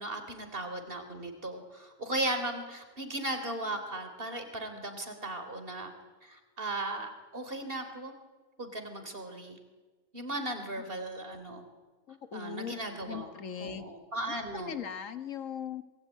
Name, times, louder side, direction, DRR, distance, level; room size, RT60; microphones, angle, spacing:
voice 1, 0.0-5.9 6.2-8.1 8.6-9.6 10.1-11.7 12.3-13.3 13.6-14.7, right 1 dB, 45° right, 7 dB, 3.7 m, -37 dB
voice 2, 12.1-12.7 13.0-13.9 14.3-15.8, left 8 dB, 85° left, 10 dB, 1.7 m, -39 dB
27.0 x 21.0 x 9.4 m, 1.3 s
omnidirectional pair, 1.3 m